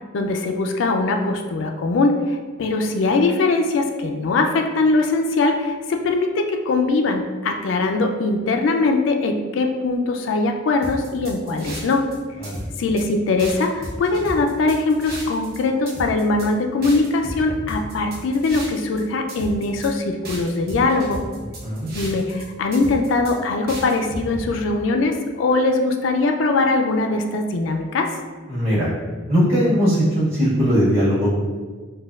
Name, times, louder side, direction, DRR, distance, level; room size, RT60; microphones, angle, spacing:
voice 1, 0.1-12.0 12.8-21.2 21.9-28.1, left 3 dB, 75° left, 4 dB, 0.3 m, -21 dB
sound 1, 10.8-12.1 12.4-13.0 13.4-15.6 15.9-16.5 16.8-19.0 19.3-19.9 20.2-22.4 22.7-23.3 23.7-24.4, right 1 dB, 55° right, 0.8 m, -34 dB
voice 2, 28.5-28.9 29.3-31.4, equal, 35° right, -10 dB, 1.5 m, -19 dB
4.1 x 2.2 x 2.3 m, 1.5 s
head